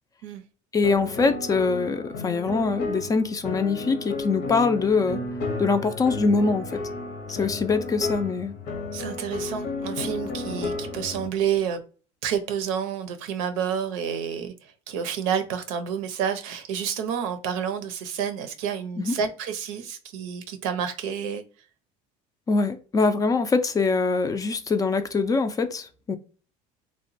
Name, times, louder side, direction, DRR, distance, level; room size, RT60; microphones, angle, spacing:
voice 1, 0.7-5.2 5.6-6.7 7.3-8.5 19.0-19.1 22.5-26.2, left 4 dB, 20° left, 0.3 m, -23 dB
sound 1, 0.8-11.3, left 3 dB, 75° left, 0.8 m, -33 dB
voice 2, 8.9-11.8 12.2-21.4, right 8 dB, 90° right, 0.6 m, -29 dB
3.0 x 2.1 x 2.6 m
supercardioid pair, 105°, 16 cm